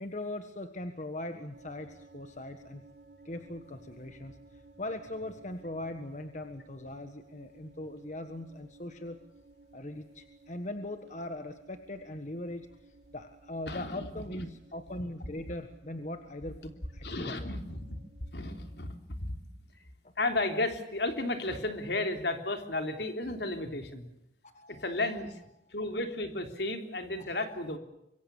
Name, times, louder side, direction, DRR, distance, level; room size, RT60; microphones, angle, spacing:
voice 1, 0.0-2.8 3.2-9.2 9.7-17.6 20.0-20.1 24.4-24.9 27.2-27.4, left 1 dB, 40° left, 7 dB, 1.4 m, -40 dB
sound 1, 1.5-18.8, right 2 dB, 90° right, 5.3 m, -58 dB
voice 2, 13.7-14.1 14.3-14.4 17.0-18.0 18.3-19.4 20.2-24.0 24.7-25.4 25.7-27.8, left 2 dB, 65° left, 6 dB, 3.4 m, -33 dB
25.5 x 23.0 x 7.1 m, 0.84 s
head